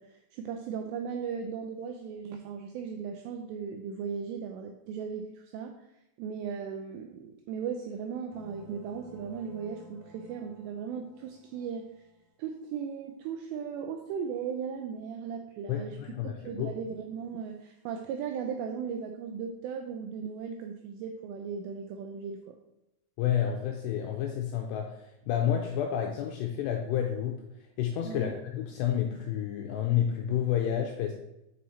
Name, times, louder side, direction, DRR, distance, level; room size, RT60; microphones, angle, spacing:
voice 1, 0.0-5.8 6.2-11.9 12.4-16.0 16.2-22.6 28.0-28.4, right 6 dB, 85° right, 4 dB, 2.4 m, -37 dB
sound 1, 8.3-12.3, equal, 40° right, 2.4 m, -53 dB
voice 2, 15.7-16.7 23.2-27.4 27.8-31.1, left 10 dB, 90° left, 2 dB, 2.4 m, -30 dB
6.4 x 5.5 x 4.2 m, 0.89 s
omnidirectional pair, 5.5 m